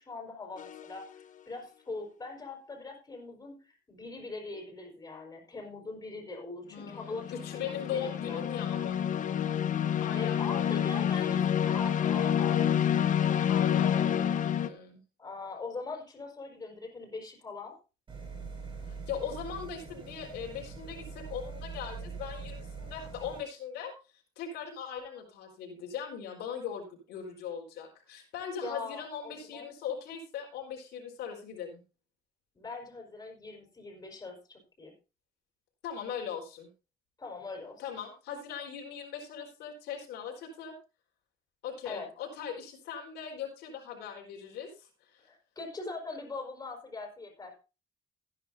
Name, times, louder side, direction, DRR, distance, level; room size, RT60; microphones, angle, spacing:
voice 1, 0.0-8.4 10.2-12.9 13.2-14.1 15.2-17.7 28.6-29.7 32.6-34.9 37.2-37.8 41.8-42.1 45.3-47.6, left 3 dB, 20° left, 1 dB, 5.4 m, -42 dB
sound 1, 0.6-0.9 6.8-14.7, left 9 dB, 50° left, 0.9 m, -28 dB
voice 2, 6.7-9.0 10.0-10.8 13.5-15.0 18.9-23.9 24.4-31.8 35.8-36.7 37.8-40.7 41.6-45.2, left 7 dB, 80° left, 0 dB, 4.4 m, -40 dB
sound 2, 18.1-23.4, right 4 dB, 30° right, 6.1 m, -43 dB
16.0 x 10.0 x 2.7 m, 0.31 s
cardioid pair, 110°, 17 cm